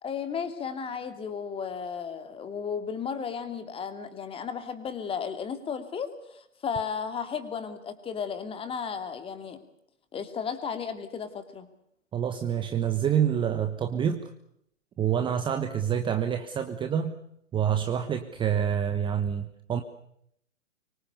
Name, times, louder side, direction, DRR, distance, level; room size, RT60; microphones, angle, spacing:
voice 1, 0.0-9.6 10.1-11.7, left 6 dB, 15° left, 9 dB, 2.7 m, -34 dB
voice 2, 12.1-14.3 15.0-17.1 17.5-19.8, right 8 dB, 10° right, 8 dB, 1.2 m, -27 dB
25.0 x 24.5 x 6.8 m, 0.74 s
figure-of-eight pair, 125°, 39 cm